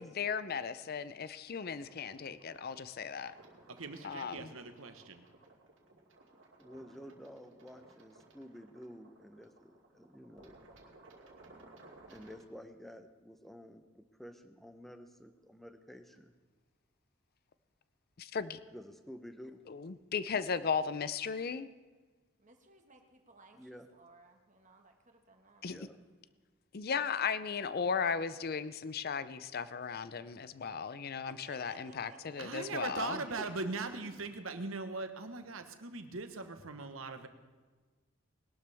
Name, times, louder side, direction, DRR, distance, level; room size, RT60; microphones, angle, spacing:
voice 1, 0.0-3.3 4.0-4.5 18.2-18.6 19.7-21.7 25.6-25.9 26.7-33.2, left 6 dB, 50° left, 14 dB, 0.5 m, -36 dB
sound 1, 1.6-12.4, right 2 dB, 65° right, 2.4 m, -59 dB
voice 2, 3.7-5.2 32.4-37.3, right 3 dB, 85° right, 7 dB, 1.2 m, -40 dB
voice 3, 6.6-10.6 12.1-16.3 18.7-19.7 23.5-23.9 25.7-26.0 32.9-33.7, equal, ahead, 8 dB, 0.7 m, -51 dB
voice 4, 22.4-25.8 31.3-33.0 33.2-33.3, right 2 dB, 40° right, 4 dB, 1.6 m, -60 dB
20.5 x 12.0 x 3.5 m, 1.4 s
head